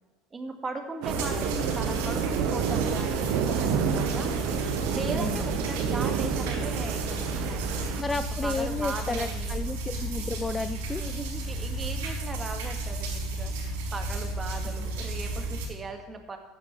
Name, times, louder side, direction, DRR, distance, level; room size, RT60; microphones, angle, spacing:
voice 1, 0.3-4.3 4.9-7.7 8.1-9.6 11.0-16.4, right 3 dB, 25° right, 4 dB, 1.9 m, -38 dB
sound 1, 1.0-8.0, right 7 dB, 65° right, 1.0 m, -29 dB
sound 2, 1.1-15.7, right 2 dB, 85° right, 3.2 m, -33 dB
voice 2, 5.1-5.6 8.0-11.0, left 3 dB, 20° left, 10 dB, 0.5 m, -32 dB
14.5 x 9.2 x 3.3 m, 1.3 s
hypercardioid pair, 90°, 0 cm